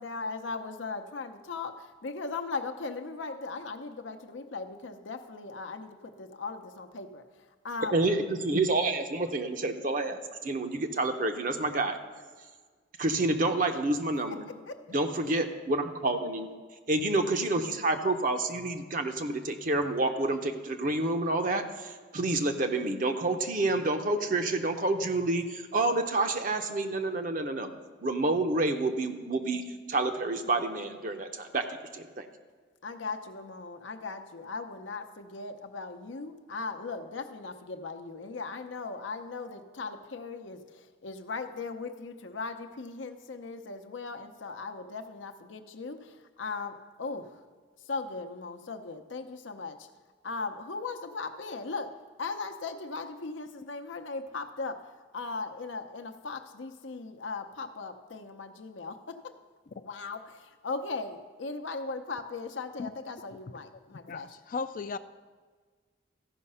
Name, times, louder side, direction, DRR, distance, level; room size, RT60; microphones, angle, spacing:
voice 1, 0.0-8.0 14.5-14.8 32.8-47.4 47.8-49.9 50.2-59.4 59.8-64.4, left 4 dB, 80° left, 7 dB, 0.7 m, -38 dB
voice 2, 7.9-12.0 13.0-14.5 14.9-16.5 16.9-27.7 28.0-31.7 31.9-32.3, right 2 dB, 45° right, 6 dB, 0.6 m, -28 dB
voice 3, 64.1-65.0, left 4 dB, 45° left, 13 dB, 0.3 m, -35 dB
14.0 x 5.7 x 5.5 m, 1.5 s
head